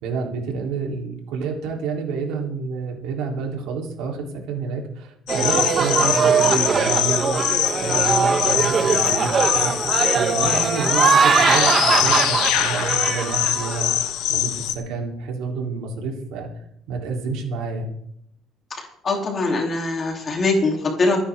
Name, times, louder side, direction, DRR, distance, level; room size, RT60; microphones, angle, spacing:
voice 1, 0.0-7.4 7.8-9.7 10.1-13.9 14.3-16.5 16.9-17.9, right 4 dB, 80° right, 1 dB, 3.5 m, -29 dB
sound 1, 5.3-14.7, left 12 dB, 75° left, 1.2 m, -23 dB
sound 2, 5.3-14.0, right 5 dB, 25° right, 1.1 m, -21 dB
voice 2, 18.7-21.2, left 3 dB, 25° left, 1 dB, 3.1 m, -22 dB
24.5 x 9.9 x 3.7 m, 0.73 s
cardioid pair, 170°, 0 cm